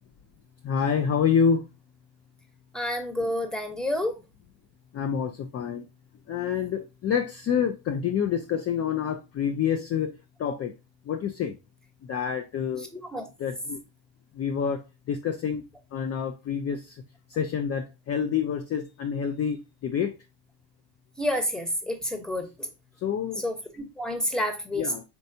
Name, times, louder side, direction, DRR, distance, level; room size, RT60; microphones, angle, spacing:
voice 1, 0.6-1.7 4.9-5.9 6.3-10.7 11.1-11.6 12.0-12.9 13.4-13.8 14.3-15.6 15.9-17.0 17.3-20.2 23.0-23.4 24.7-25.0, left 7 dB, 35° left, 0.5 m, -27 dB
voice 2, 2.7-4.2 12.9-13.2 21.2-22.7 23.4-24.9, left 1 dB, ahead, 1.0 m, -29 dB
4.5 x 3.2 x 2.7 m
hypercardioid pair, 75°, 47 cm